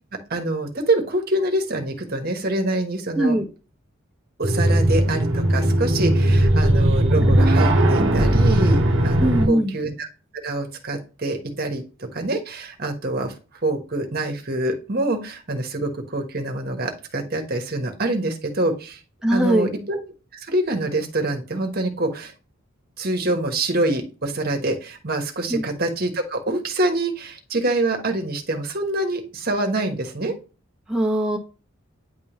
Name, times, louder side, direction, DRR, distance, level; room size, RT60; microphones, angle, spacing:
voice 1, 0.1-3.3 4.4-10.1 10.4-13.3 13.6-19.0 19.3-20.0 20.3-22.3 23.0-30.3, right 2 dB, 50° right, 4 dB, 1.2 m, -25 dB
voice 2, 3.1-3.5 9.2-9.8 19.2-19.7 25.5-25.6 30.9-31.4, right 1 dB, 5° right, 0 dB, 1.1 m, -20 dB
sound 1, 4.4-9.5, right 1 dB, 65° right, 1.0 m, -18 dB
9.4 x 3.5 x 3.0 m, 0.33 s
head